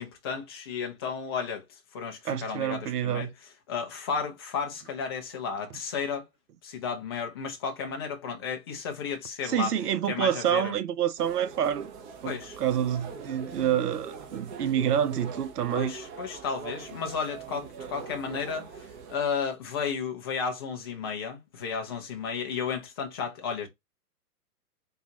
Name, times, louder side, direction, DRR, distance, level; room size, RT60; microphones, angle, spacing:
voice 1, 0.0-3.3 3.7-6.3 6.6-9.7 10.1-10.7 12.2-12.6 15.7-23.7, left 6 dB, 20° left, 0.4 m, -33 dB
voice 2, 2.2-3.3 9.4-11.9 12.2-15.9, right 9 dB, 75° right, 0.7 m, -27 dB
sound 1, 11.2-19.2, right 5 dB, 30° right, 0.9 m, -42 dB
3.8 x 2.3 x 2.8 m
hypercardioid pair, 120°, 48 cm